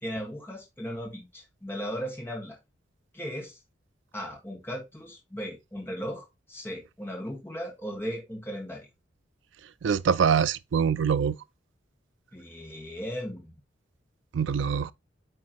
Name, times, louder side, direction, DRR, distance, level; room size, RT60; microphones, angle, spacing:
voice 1, 0.0-2.6 3.1-3.6 4.1-8.9 12.3-13.5, equal, 10° left, 1.5 m, -37 dB
voice 2, 9.8-11.3 14.3-14.9, right 7 dB, 75° right, 0.4 m, -24 dB
8.9 x 3.8 x 2.9 m
head